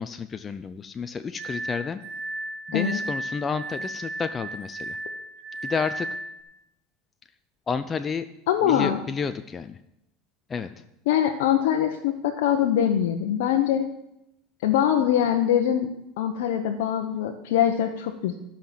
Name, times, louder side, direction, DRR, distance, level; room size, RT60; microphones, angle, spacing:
voice 1, 0.0-2.0 2.7-5.0 5.6-6.2 7.7-8.3 8.6-9.8 10.5-10.7, left 5 dB, 25° left, 10 dB, 0.6 m, -30 dB
Glass, 1.4-6.4, right 1 dB, 65° right, 2.0 m, -34 dB
voice 2, 8.5-9.0 11.1-13.8 14.6-15.9 16.2-18.4, left 10 dB, 80° left, 3 dB, 0.9 m, -23 dB
14.0 x 5.8 x 7.4 m, 0.86 s
supercardioid pair, 105°, 0 cm